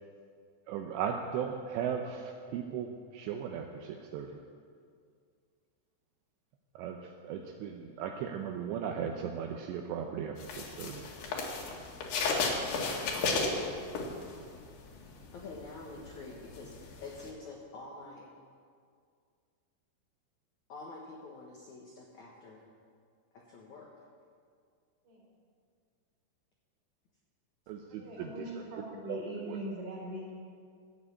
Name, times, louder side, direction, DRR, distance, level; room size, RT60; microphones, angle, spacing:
voice 1, 0.7-2.2 2.5-2.9 3.1-3.7 4.1-4.3 6.8-7.0 7.2-11.0 27.7-28.3 29.1-29.2, right 8 dB, 80° right, 3 dB, 2.7 m, -36 dB
sound 1, 10.4-14.6 14.9-17.3, left 4 dB, 65° left, 3.3 m, -33 dB
voice 2, 15.3-16.7 17.0-18.3 20.7-22.6 23.3-23.9, left 3 dB, 80° left, -2 dB, 1.7 m, -47 dB
voice 3, 27.9-30.3, equal, 40° right, -4 dB, 4.8 m, -41 dB
14.5 x 8.1 x 8.5 m, 2.2 s
omnidirectional pair, 5.6 m